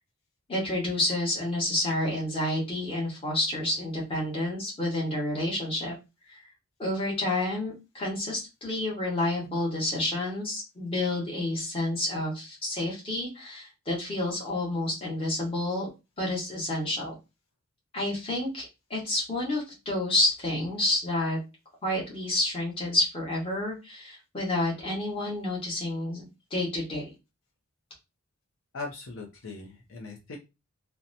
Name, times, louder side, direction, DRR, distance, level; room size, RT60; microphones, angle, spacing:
voice 1, 0.5-5.9 6.3-6.4 6.8-15.9 16.2-17.1 17.9-21.4 21.8-27.1, left 1 dB, 25° left, -4 dB, 1.1 m, -29 dB
voice 2, 28.7-30.4, left 3 dB, 65° left, -1 dB, 0.6 m, -39 dB
2.8 x 2.1 x 2.5 m, 0.26 s
head